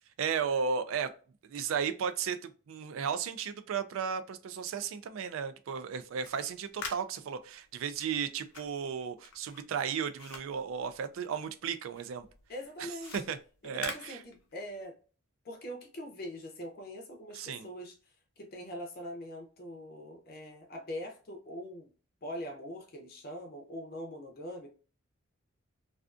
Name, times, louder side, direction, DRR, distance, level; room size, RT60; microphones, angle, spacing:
voice 1, 0.2-1.1 1.5-12.3 12.8-13.4 13.6-14.2 17.3-17.7, right 6 dB, 75° right, 0.3 m, -34 dB
sound 1, 6.0-11.6 11.9-14.8, left 5 dB, 90° left, 0.6 m, -46 dB
voice 2, 12.5-13.1 13.6-14.9 15.4-18.0 18.4-21.9 22.2-24.7, equal, 45° left, 0.5 m, -42 dB
2.4 x 2.4 x 2.4 m
head